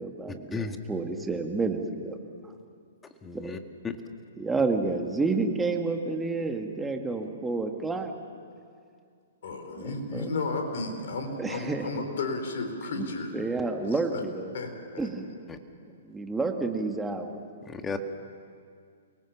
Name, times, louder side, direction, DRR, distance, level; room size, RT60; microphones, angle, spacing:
voice 1, 0.0-2.2 4.4-8.1 9.8-10.3 11.4-12.0 12.9-13.1 13.3-14.6 15.0-15.4 16.0-17.5, right 3 dB, 10° right, 4 dB, 1.9 m, -30 dB
voice 2, 3.2-3.6 3.8-3.9 15.5-15.6 17.7-18.0, left 4 dB, 15° left, 7 dB, 1.7 m, -33 dB
voice 3, 9.4-13.3 14.1-14.2 14.5-14.7, left 3 dB, 60° left, 5 dB, 4.1 m, -33 dB
29.5 x 19.0 x 7.4 m, 2.3 s
figure-of-eight pair, 120°, 0 cm